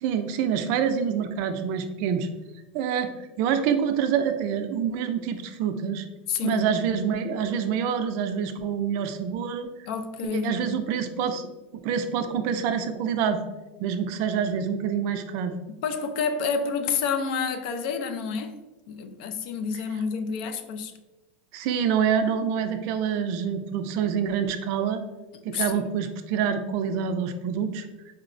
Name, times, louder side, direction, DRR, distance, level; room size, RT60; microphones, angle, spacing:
voice 1, 0.0-2.3 2.7-6.0 6.4-9.7 10.3-11.5 11.7-13.4 13.8-15.6 21.5-25.0 25.4-27.8, right 7 dB, 50° right, 0.3 m, -26 dB
voice 2, 6.3-6.6 9.9-10.6 15.8-18.6 18.9-20.9 25.5-25.8, left 5 dB, 60° left, 0.4 m, -29 dB
4.3 x 2.0 x 2.5 m
supercardioid pair, 140°, 6 cm